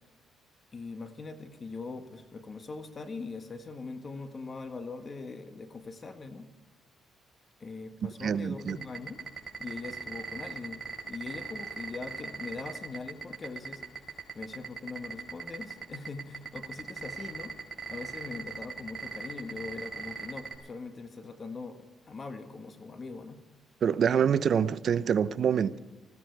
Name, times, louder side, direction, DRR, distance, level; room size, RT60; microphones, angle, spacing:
voice 1, 0.7-6.5 7.6-9.2 9.6-17.6 17.9-23.4, left 4 dB, 35° left, 7 dB, 1.7 m, -41 dB
voice 2, 8.2-8.8 23.8-25.8, right 7 dB, 60° right, 15 dB, 0.7 m, -26 dB
sound 1, 8.6-20.5, right 5 dB, 35° right, 4.6 m, -38 dB
19.5 x 15.5 x 4.7 m, 1.1 s
cardioid pair, 90°, 0 cm